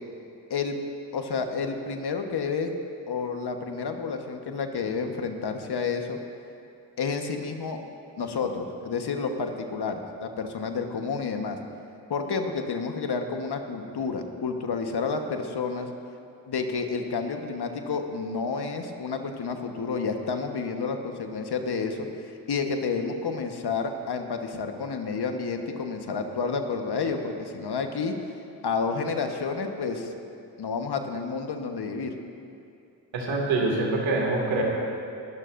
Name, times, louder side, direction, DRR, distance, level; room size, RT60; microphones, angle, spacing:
voice 1, 1.1-2.7 3.1-6.2 7.0-7.8 8.2-11.6 12.1-15.9 16.5-28.1 28.6-30.1 30.6-32.1, left 5 dB, 55° left, 5 dB, 1.4 m, -30 dB
voice 2, 33.1-34.6, right 2 dB, 75° right, -2 dB, 2.6 m, -25 dB
20.5 x 12.5 x 2.6 m, 2.6 s
supercardioid pair, 45°, 46 cm